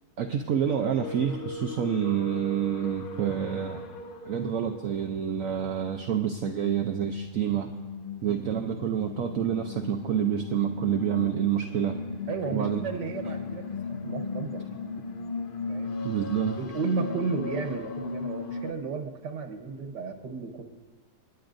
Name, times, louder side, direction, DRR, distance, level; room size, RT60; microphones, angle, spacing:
voice 1, 0.2-3.8 4.3-7.7 8.2-12.0 12.5-12.8 16.0-16.6, right 9 dB, 65° right, 4 dB, 0.9 m, -28 dB
sound 1, 0.6-18.7, left 3 dB, 55° left, 0.6 m, -37 dB
voice 2, 12.3-14.6 15.7-16.0 16.6-20.6, right 4 dB, 85° right, 5 dB, 1.8 m, -33 dB
28.0 x 10.5 x 2.6 m, 1.4 s
omnidirectional pair, 1.8 m